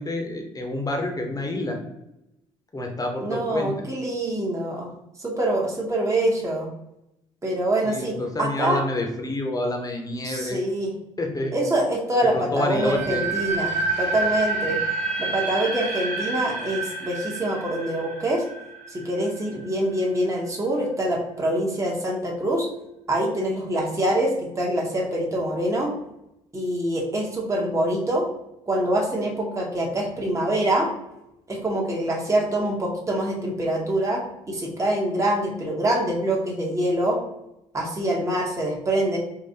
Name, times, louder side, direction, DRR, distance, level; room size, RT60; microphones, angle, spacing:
voice 1, 0.0-1.8 2.7-3.7 7.8-10.6 11.2-11.5 12.2-13.2, left 1 dB, 20° left, 2 dB, 0.9 m, -28 dB
voice 2, 3.2-4.9 5.2-6.7 7.4-8.8 10.2-10.9 11.5-14.8 15.2-18.4 18.9-22.7 23.1-25.9 26.5-28.2 28.7-30.9 31.5-37.2 37.7-39.2, right 1 dB, 20° right, -2 dB, 1.0 m, -25 dB
sound 1, 12.7-19.6, right 3 dB, 45° right, 1.4 m, -28 dB
3.8 x 2.5 x 2.8 m, 0.87 s
hypercardioid pair, 50°, 16 cm